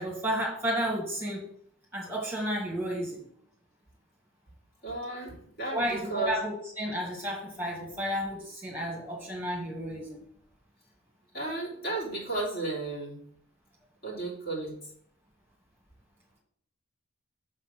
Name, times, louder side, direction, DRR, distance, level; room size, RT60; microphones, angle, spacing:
voice 1, 0.0-1.4 1.9-3.2 5.7-10.2, equal, 10° right, -1 dB, 2.1 m, -32 dB
voice 2, 4.8-6.4 11.3-13.2 14.0-14.8, right 2 dB, 45° left, -5 dB, 3.4 m, -34 dB
6.6 x 4.0 x 6.1 m, 0.65 s
head